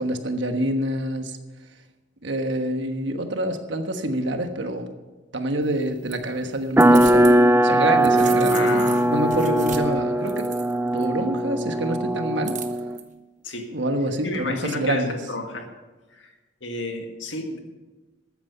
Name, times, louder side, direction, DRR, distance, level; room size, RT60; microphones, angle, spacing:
voice 1, 0.0-1.4 2.2-4.9 5.3-7.4 7.6-10.5 10.9-12.6 13.7-15.2, right 1 dB, 70° right, 6 dB, 1.3 m, -26 dB
sound 1, 5.6-7.4 7.7-11.0 12.4-13.0, right 8 dB, 40° right, 1.0 m, -37 dB
sound 2, 6.8-13.0, right 1 dB, 10° right, 0.4 m, -20 dB
voice 2, 8.5-9.1 13.4-13.7 14.2-15.7 16.1-16.3 16.6-17.6, left 2 dB, 75° left, 4 dB, 1.9 m, -31 dB
13.5 x 9.6 x 5.5 m, 1.2 s
head